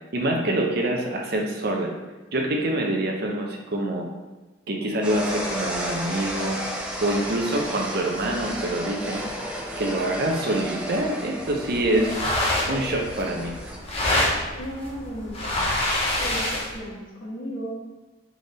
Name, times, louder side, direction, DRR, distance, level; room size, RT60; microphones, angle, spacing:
voice 1, 0.1-1.9 2.3-4.0 4.7-6.6 7.0-9.2 9.8-12.2 12.7-13.5, right 1 dB, 50° right, 1 dB, 0.7 m, -25 dB
sound 1, 5.0-13.8, equal, 5° right, 0.5 m, -33 dB
sound 2, 11.7-16.8, left 1 dB, 30° left, 0.8 m, -26 dB
voice 2, 14.5-15.7 16.2-17.7, equal, 90° left, -8 dB, 1.4 m, -35 dB
3.8 x 3.5 x 4.0 m, 1.2 s
head